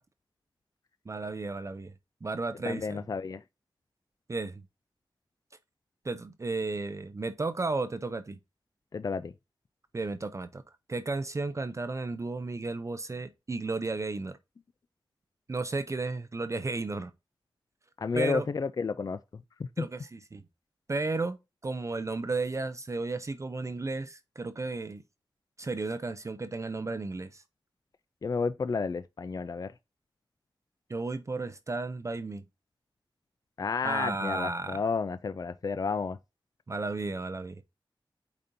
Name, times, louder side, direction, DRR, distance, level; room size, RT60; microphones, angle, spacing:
voice 1, 1.1-1.9 2.2-3.0 4.3-4.6 6.0-8.4 9.9-10.6 10.9-14.4 15.5-17.1 18.1-18.5 19.8-20.4 20.9-21.4 21.6-25.0 25.6-27.4 30.9-32.4 33.8-34.8 36.7-37.6, right 3 dB, 35° right, 0.5 m, -33 dB
voice 2, 2.6-3.4 8.9-9.3 18.0-19.2 19.6-19.9 28.2-29.7 33.6-36.2, left 4 dB, 45° left, 0.3 m, -31 dB
8.7 x 4.2 x 2.6 m
wide cardioid pair, 95°, 9 cm